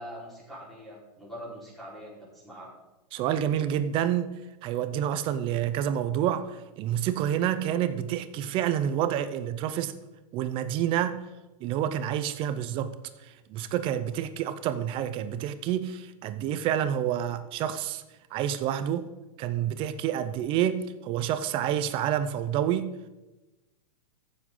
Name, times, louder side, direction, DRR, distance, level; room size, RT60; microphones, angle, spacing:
voice 1, 0.0-2.8, equal, ahead, -7 dB, 4.3 m, -43 dB
voice 2, 3.1-4.3 4.6-9.9 10.3-11.2 11.6-12.9 13.2-18.0 18.3-19.0 19.4-22.9, right 10 dB, 25° right, 12 dB, 0.5 m, -28 dB
14.5 x 7.2 x 3.8 m, 1.1 s
hypercardioid pair, 150°, 21 cm